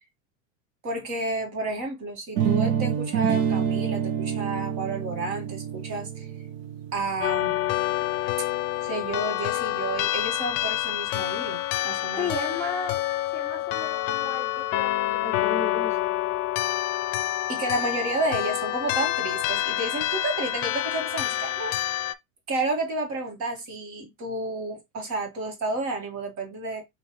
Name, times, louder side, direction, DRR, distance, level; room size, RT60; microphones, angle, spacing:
voice 1, 0.8-6.3 6.9-7.6 8.8-12.3 17.5-21.7 22.5-26.8, right 2 dB, 40° right, 1.9 m, -31 dB
sound 1, 2.4-8.3, right 8 dB, 65° right, 0.9 m, -27 dB
sound 2, 7.2-22.1, left 15 dB, 60° left, 0.6 m, -27 dB
voice 2, 12.2-13.0 13.3-16.0, left 3 dB, 5° left, 0.7 m, -34 dB
5.1 x 2.9 x 3.1 m
supercardioid pair, 130°, 41 cm